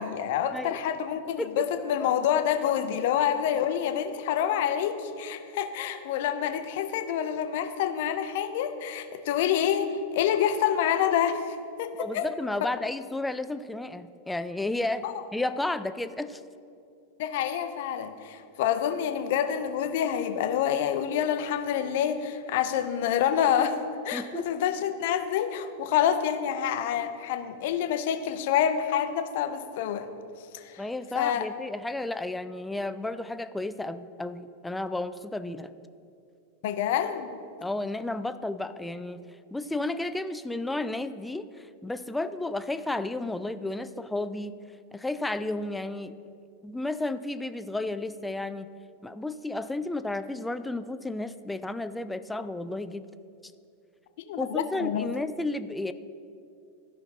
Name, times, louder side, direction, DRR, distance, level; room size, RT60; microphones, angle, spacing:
voice 1, 0.0-12.3 15.0-15.1 17.2-30.1 30.5-30.8 31.1-31.5 36.6-37.3 54.3-55.1, left 9 dB, 50° left, 9 dB, 0.6 m, -27 dB
voice 2, 12.0-15.0 15.3-16.4 24.1-24.5 30.8-35.7 37.6-44.6 44.9-46.1 46.6-48.7 49.0-53.1 53.4-53.5 54.4-55.9, left 2 dB, 5° left, 12 dB, 0.3 m, -32 dB
14.0 x 5.7 x 3.7 m, 2.5 s
figure-of-eight pair, 90°, 0 cm